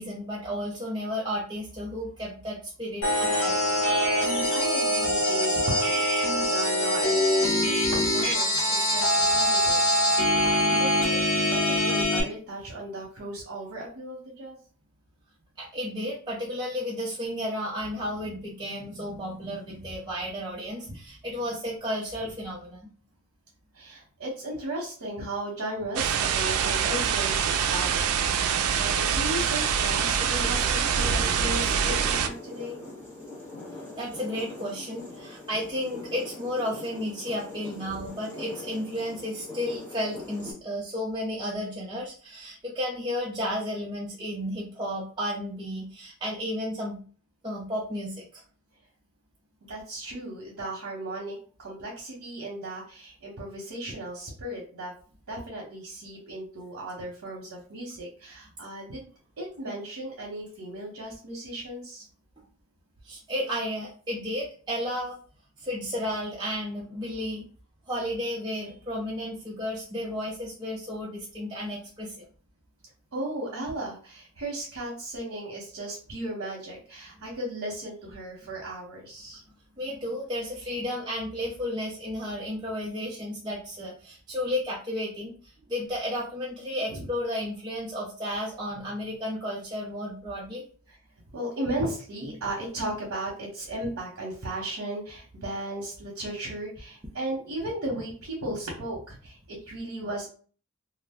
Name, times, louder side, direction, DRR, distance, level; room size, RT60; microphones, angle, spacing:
voice 1, 0.0-3.6 8.5-8.6 15.6-22.9 34.0-47.0 47.4-48.4 63.0-65.2 65.6-67.4 67.9-72.3 79.8-90.6, left 1 dB, 20° right, -5 dB, 0.5 m, -33 dB
sound 1, 3.0-12.2, left 1 dB, 65° left, 1.0 m, -23 dB
voice 2, 4.5-9.8 10.4-14.6 23.7-28.1 28.4-32.8 49.7-54.9 55.3-59.1 59.4-62.1 73.1-79.4 86.9-87.1 91.3-100.3, right 1 dB, 65° right, -3 dB, 0.8 m, -36 dB
sound 2, 26.0-32.3, right 7 dB, 85° right, 0.3 m, -25 dB
sound 3, 29.3-40.5, left 2 dB, 10° left, 1.2 m, -42 dB
2.4 x 2.1 x 3.5 m, 0.41 s
head